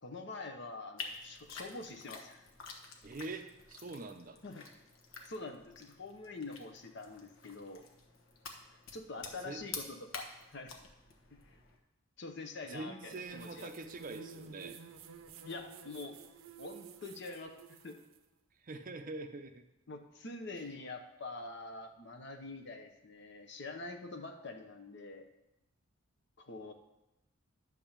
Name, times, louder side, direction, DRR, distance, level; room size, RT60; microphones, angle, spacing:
voice 1, 0.0-2.4 4.4-4.6 5.2-7.8 8.9-10.8 11.3-11.6 12.2-13.7 15.4-16.1 16.6-17.5 17.8-18.0 19.9-25.3 26.4-26.7, left 3 dB, 55° left, 5 dB, 0.8 m, -45 dB
sound 1, 1.0-11.8, left 4 dB, 75° left, 1.2 m, -49 dB
voice 2, 3.0-4.4 9.4-9.6 12.7-14.8 18.6-19.6 20.5-20.7, right 2 dB, 40° right, 7 dB, 0.5 m, -44 dB
sound 2, 13.0-18.2, right 6 dB, 80° right, 0.7 m, -52 dB
11.0 x 3.6 x 7.2 m, 0.91 s
head